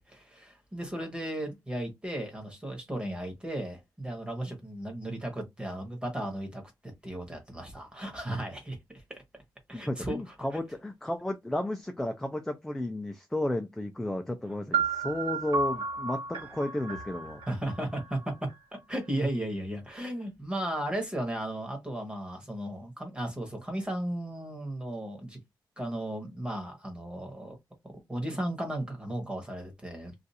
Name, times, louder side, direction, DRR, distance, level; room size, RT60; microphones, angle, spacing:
voice 1, 0.0-9.2 9.7-10.3 17.5-18.5 18.9-25.4 25.8-27.6 27.8-30.1, right 1 dB, 10° right, 1.1 m, -35 dB
voice 2, 9.7-17.4, left 1 dB, 5° left, 0.4 m, -33 dB
sound 1, 14.7-18.6, right 4 dB, 85° right, 1.1 m, -33 dB
2.5 x 2.4 x 4.1 m
wide cardioid pair, 160°, 8 cm